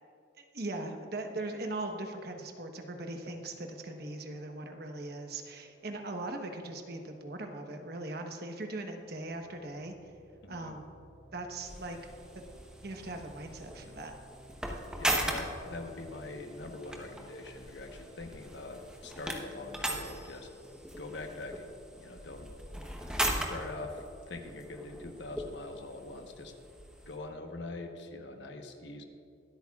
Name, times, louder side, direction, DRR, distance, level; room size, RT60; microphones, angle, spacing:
voice 1, 0.4-10.0 10.5-10.9 11.3-12.0 12.3-12.4 12.8-14.1, right 2 dB, 55° right, 4 dB, 1.1 m, -40 dB
sound 1, 3.6-20.3, equal, 30° right, 1.9 m, -58 dB
voice 2, 10.4-10.7 15.0-20.5 21.0-21.7 22.0-22.5 23.0-26.5 27.1-29.0, left 2 dB, 65° left, 4 dB, 1.1 m, -43 dB
sound 2, 11.6-27.2, right 1 dB, 5° right, 1.0 m, -39 dB
23.5 x 8.5 x 2.4 m, 2.6 s
head